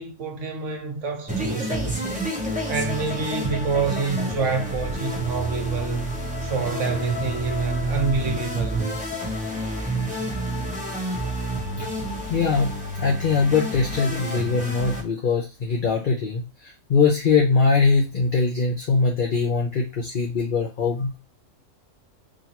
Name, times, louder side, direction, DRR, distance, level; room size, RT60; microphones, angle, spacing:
voice 1, 0.0-2.1 2.7-6.1 6.4-9.0, right 5 dB, 65° right, 1.2 m, -27 dB
sound 1, 1.3-15.0, equal, 5° right, 0.9 m, -29 dB
voice 2, 12.3-21.2, left 4 dB, 45° left, 0.8 m, -22 dB
5.0 x 2.7 x 2.9 m
omnidirectional pair, 1.4 m